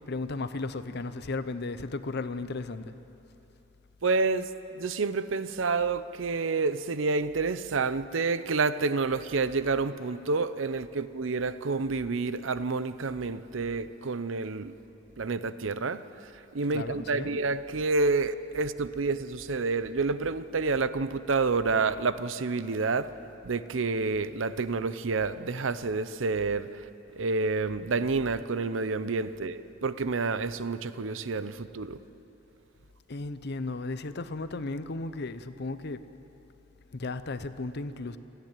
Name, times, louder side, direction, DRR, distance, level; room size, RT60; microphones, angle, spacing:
voice 1, 0.1-3.0 16.7-17.4 33.1-36.0 36.9-38.2, left 3 dB, 55° left, 12 dB, 0.8 m, -35 dB
voice 2, 4.0-14.7 15.2-23.1 23.4-26.9 27.2-32.0, right 4 dB, 75° right, 13 dB, 0.7 m, -29 dB
28.0 x 10.5 x 9.1 m, 3.0 s
head